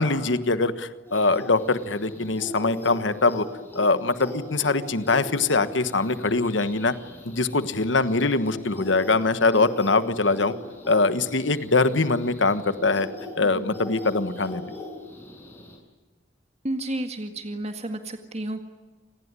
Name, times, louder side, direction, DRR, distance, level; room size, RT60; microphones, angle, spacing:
voice 1, 0.0-3.5 3.7-6.9 7.2-10.5 10.9-13.1 13.4-14.6, left 3 dB, 70° left, 12 dB, 1.4 m, -23 dB
sound 1, 1.0-15.8, left 1 dB, 10° left, 6.8 m, -40 dB
voice 2, 16.6-18.6, right 1 dB, 35° right, 6 dB, 1.9 m, -31 dB
28.0 x 19.5 x 9.8 m, 1.2 s
head